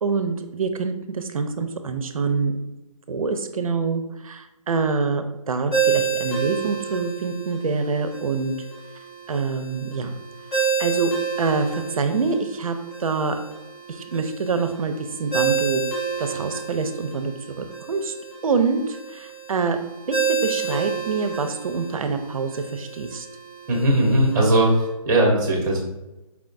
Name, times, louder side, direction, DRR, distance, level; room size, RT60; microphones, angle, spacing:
voice 1, 0.0-2.5 3.1-8.6 9.3-10.1 10.5-11.1 11.4-13.4 13.9-15.8 16.2-18.1 18.4-19.8 20.1-23.3, right 4 dB, 70° right, 9 dB, 0.6 m, -26 dB
Ringtone, 5.7-24.9, right 6 dB, 10° left, 0.6 m, -30 dB
voice 2, 23.7-24.7 25.0-25.8, right 1 dB, 30° right, -1 dB, 1.3 m, -18 dB
4.7 x 3.5 x 2.6 m, 0.99 s
hypercardioid pair, 165°, 19 cm